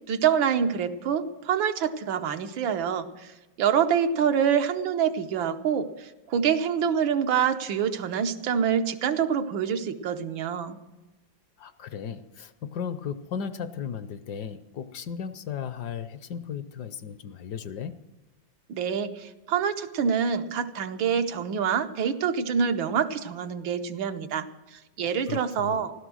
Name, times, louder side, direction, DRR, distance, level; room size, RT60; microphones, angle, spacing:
voice 1, 0.1-3.3 3.6-10.8 18.7-25.9, right 7 dB, 85° right, 7 dB, 1.7 m, -26 dB
voice 2, 11.6-18.0 25.0-25.9, left 7 dB, 65° left, 13 dB, 1.2 m, -36 dB
15.0 x 12.5 x 6.2 m, 1.1 s
omnidirectional pair, 2.1 m